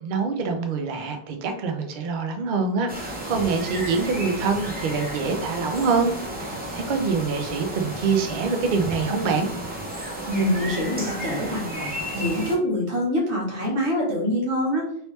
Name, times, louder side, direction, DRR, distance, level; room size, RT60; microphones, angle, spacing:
voice 1, 0.0-9.5, right 4 dB, 55° right, 5 dB, 0.7 m, -25 dB
sound 1, 2.9-12.6, right 1 dB, 10° right, 0.5 m, -33 dB
voice 2, 10.3-14.9, equal, 80° right, -3 dB, 1.5 m, -25 dB
3.1 x 2.9 x 3.1 m, 0.67 s
omnidirectional pair, 1.1 m